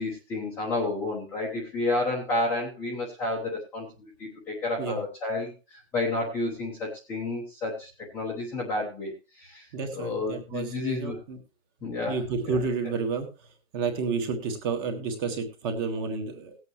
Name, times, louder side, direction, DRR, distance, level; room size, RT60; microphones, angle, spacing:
voice 1, 0.0-9.7 9.9-11.2 11.8-12.2 12.5-12.6 12.8-12.9, left 2 dB, 5° left, -5 dB, 0.9 m, -31 dB
voice 2, 9.7-11.4 12.1-13.3 13.7-16.6, right 4 dB, 20° right, 6 dB, 1.5 m, -30 dB
18.5 x 8.2 x 3.1 m, 0.29 s
hypercardioid pair, 175°, 39 cm